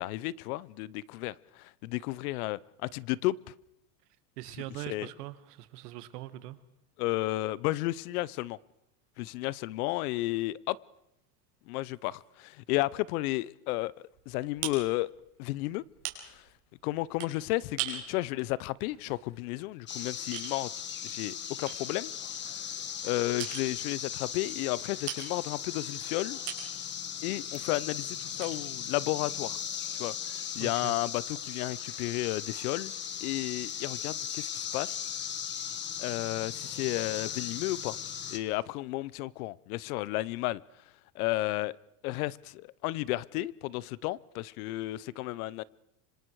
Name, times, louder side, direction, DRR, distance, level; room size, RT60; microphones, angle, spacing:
voice 1, 0.0-3.4 4.9-5.1 7.0-8.6 9.2-10.8 11.7-15.1 15.4-15.8 16.2-16.4 16.8-20.7 21.0-22.1 22.6-22.7 23.0-26.4 27.2-29.6 29.9-32.9 33.2-35.0 36.0-38.0 38.3-40.6 41.1-41.8 42.0-45.6, left 18 dB, 70° left, 0.8 m, -33 dB
voice 2, 4.4-6.6 30.6-31.0, right 15 dB, 85° right, 1.9 m, -41 dB
sound 1, 14.1-20.0 20.3-20.5 21.0-21.2 21.7-23.1 23.4-23.8 24.5-24.6 25.1-25.3 25.8-26.8 27.2-27.5 27.7-27.8 28.4-28.6, right 12 dB, 60° right, 5.1 m, -41 dB
sound 2, 19.9-38.4, left 8 dB, 25° left, 1.3 m, -38 dB
26.0 x 26.0 x 4.8 m
supercardioid pair, 160°, 46 cm